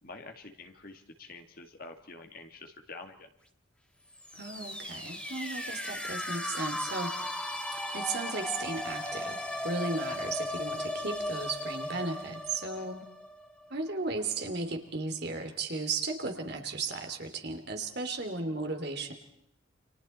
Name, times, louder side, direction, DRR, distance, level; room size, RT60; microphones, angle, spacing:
voice 1, 0.0-3.3 12.7-12.9, left 3 dB, 45° left, 4 dB, 2.3 m, -47 dB
sound 1, 4.1-13.9, left 1 dB, 5° left, 1.5 m, -37 dB
voice 2, 4.3-7.1 7.9-9.4 9.6-13.0 13.7-19.1, right 3 dB, 50° right, 5 dB, 2.8 m, -35 dB
29.5 x 26.5 x 4.4 m, 0.73 s
head